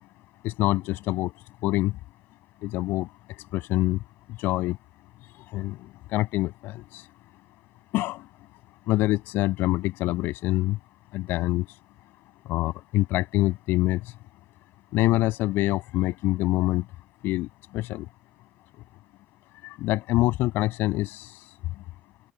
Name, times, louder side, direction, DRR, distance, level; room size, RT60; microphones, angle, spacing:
voice 1, 0.4-1.3 1.6-1.9 2.6-3.1 3.5-4.0 4.3-4.8 5.3-5.8 6.1-7.1 7.9-8.2 8.9-10.8 11.1-11.8 12.5-14.1 14.9-16.8 17.2-17.5 17.7-18.1 19.6-21.5, left 17 dB, 90° left, 7.8 m, -25 dB
open air
cardioid pair, 110°, 3 cm